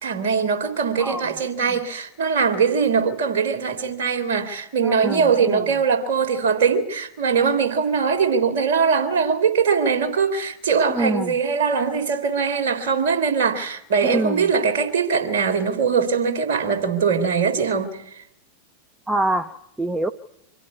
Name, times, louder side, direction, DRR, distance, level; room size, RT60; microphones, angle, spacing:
voice 1, 0.0-18.0, right 5 dB, 55° right, 3.4 m, -21 dB
voice 2, 1.0-1.4 4.8-5.6 10.9-11.3 14.0-14.5 19.1-19.5 19.8-20.1, right 2 dB, 10° right, 0.9 m, -25 dB
25.5 x 16.0 x 9.5 m
figure-of-eight pair, 90°, 0 cm